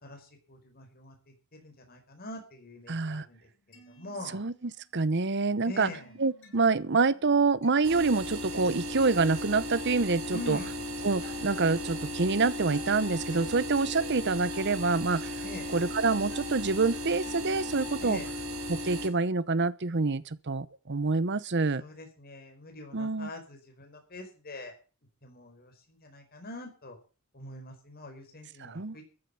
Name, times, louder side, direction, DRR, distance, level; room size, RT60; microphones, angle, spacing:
voice 1, 0.0-3.4 3.7-4.4 5.6-6.1 10.3-10.8 15.4-15.7 18.0-18.3 21.8-24.7 25.2-27.0 27.3-29.1, left 2 dB, 45° left, 5.0 m, -44 dB
voice 2, 2.9-3.3 4.3-4.5 4.9-5.9 6.2-10.6 11.0-15.3 15.7-18.2 18.7-21.8 22.9-23.3 28.6-29.0, right 4 dB, 55° right, 0.9 m, -27 dB
sound 1, 3.5-4.9 5.3-18.1, left 3 dB, 65° left, 6.3 m, -52 dB
sound 2, 7.8-19.1, left 1 dB, 85° right, 4.3 m, -36 dB
14.0 x 7.6 x 8.3 m
head